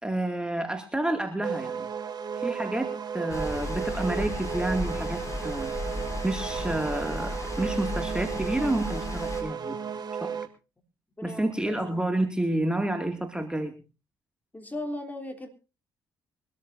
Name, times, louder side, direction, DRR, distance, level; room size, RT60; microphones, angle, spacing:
voice 1, 0.0-1.9 2.4-5.7 6.2-9.8 10.2-10.4 11.2-13.7, right 1 dB, 10° right, 4 dB, 2.4 m, -29 dB
sound 1, 1.4-10.5, right 6 dB, 45° right, 1.9 m, -34 dB
sound 2, 3.3-9.4, left 1 dB, 35° left, 6.2 m, -35 dB
voice 2, 11.2-11.8 14.5-15.5, left 1 dB, 15° left, 3 dB, 3.5 m, -37 dB
23.5 x 13.5 x 2.7 m, 0.31 s
hypercardioid pair, 50°, 9 cm